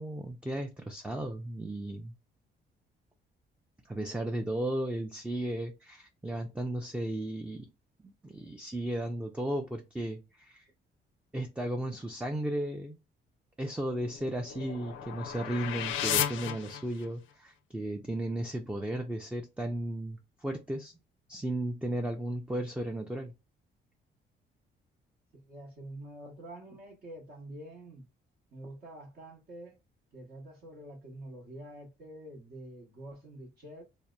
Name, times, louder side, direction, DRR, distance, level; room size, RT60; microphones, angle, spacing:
voice 1, 0.0-2.1 3.9-7.7 8.0-10.7 11.3-13.0 13.6-20.9 21.3-23.3, right 1 dB, 5° right, 0.3 m, -35 dB
sound 1, 13.9-17.3, left 9 dB, 80° left, 0.4 m, -34 dB
voice 2, 25.3-28.1 28.5-29.8 30.1-33.8, right 1 dB, 50° right, 0.9 m, -47 dB
2.7 x 2.0 x 2.2 m
cardioid pair, 90°, 20 cm